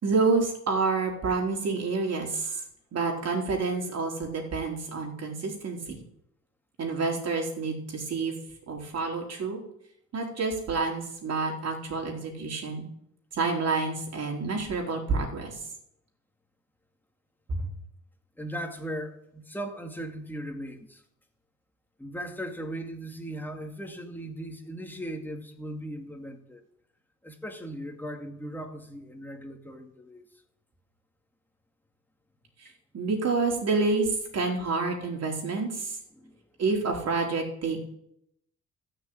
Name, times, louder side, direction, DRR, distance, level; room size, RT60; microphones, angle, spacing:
voice 1, 0.0-2.6 2.9-6.0 6.8-8.3 8.7-9.6 10.1-12.8 13.3-15.6 17.5-17.7 32.6-36.0 36.6-37.9, right 4 dB, 55° right, 1 dB, 4.5 m, -28 dB
voice 2, 18.4-21.0 22.0-26.6 27.2-30.3 36.1-36.4, right 1 dB, 5° left, 4 dB, 2.3 m, -38 dB
13.5 x 6.7 x 8.9 m, 0.75 s
cardioid pair, 90°, 30 cm